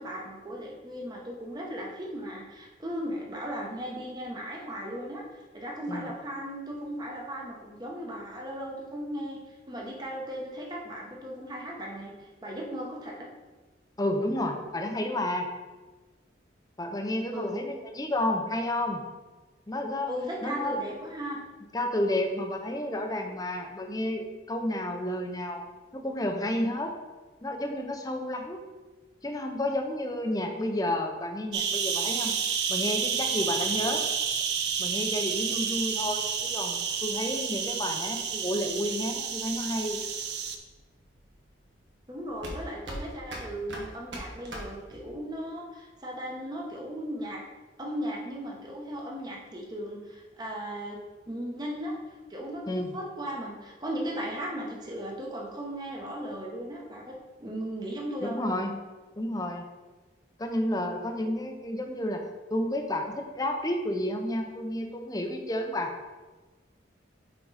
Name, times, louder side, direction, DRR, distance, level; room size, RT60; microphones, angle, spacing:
voice 1, 0.0-13.3 17.3-17.6 20.1-21.4 42.1-47.4 47.8-51.0 51.3-57.1 57.4-58.4, equal, 20° right, -2 dB, 0.9 m, -37 dB
voice 2, 14.0-15.5 16.8-19.0 19.7-20.1 20.4-20.9 21.7-25.6 25.9-26.9 27.4-28.6 29.2-32.3 32.7-34.0 34.8-40.0 52.7-52.9 58.2-58.8 59.2-59.6 60.4-62.2 62.5-65.9, left 1 dB, 20° left, 4 dB, 0.6 m, -31 dB
sound 1, 31.5-40.6, right 7 dB, 60° right, 0.5 m, -30 dB
sound 2, 39.4-45.3, right 1 dB, 80° right, 1.4 m, -41 dB
6.1 x 4.6 x 4.0 m, 1.3 s
head